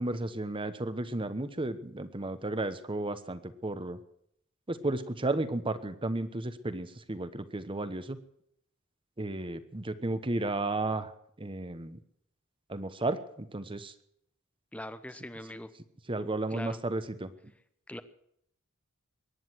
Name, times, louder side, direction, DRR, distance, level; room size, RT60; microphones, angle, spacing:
voice 1, 0.0-4.0 4.7-8.2 9.2-11.1 11.4-12.0 12.7-13.9 16.1-17.3, right 2 dB, 25° right, 12 dB, 1.0 m, -33 dB
voice 2, 14.7-15.7 16.5-16.8 17.9-18.0, left 1 dB, 5° left, 12 dB, 0.9 m, -41 dB
22.5 x 10.5 x 6.2 m, 0.72 s
head